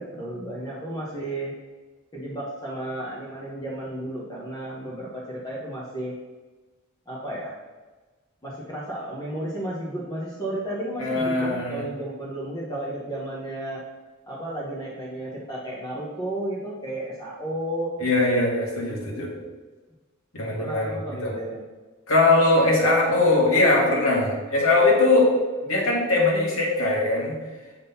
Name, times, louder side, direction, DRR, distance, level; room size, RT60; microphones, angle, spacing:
voice 1, 0.0-1.5 2.1-6.2 7.1-7.6 8.4-13.8 14.3-18.1 20.6-21.6, right 1 dB, 20° left, -6 dB, 1.1 m, -33 dB
voice 2, 11.0-11.8 18.0-19.3 20.3-21.0 21.2-21.3 22.1-25.3 25.6-27.4, left 2 dB, 80° left, -2 dB, 2.0 m, -21 dB
7.0 x 3.8 x 5.6 m, 1.3 s
head